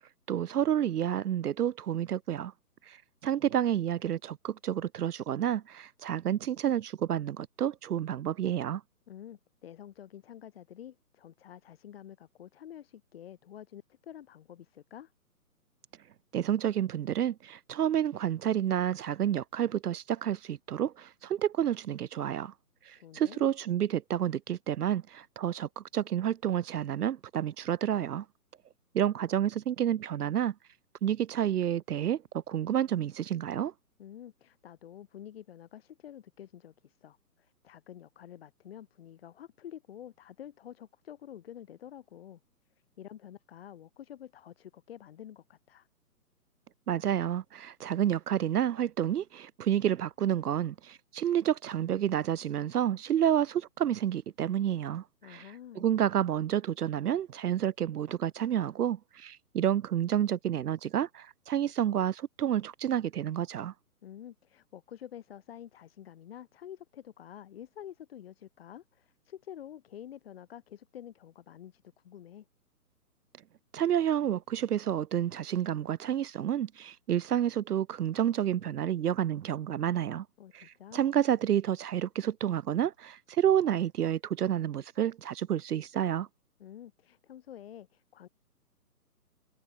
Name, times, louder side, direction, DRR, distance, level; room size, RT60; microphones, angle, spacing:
voice 1, 0.3-2.5 2.9-8.8 16.3-22.5 22.8-28.3 28.9-30.5 31.0-33.7 46.9-55.5 55.8-63.7 73.7-80.3 80.5-86.3, right 10 dB, 70° right, 0.6 m, -29 dB
voice 2, 9.1-15.1 22.9-23.4 34.0-42.4 43.0-45.9 55.2-55.9 64.0-72.5 80.4-81.1 86.6-88.3, left 10 dB, 40° left, 1.6 m, -48 dB
figure-of-eight pair, 140°, 47 cm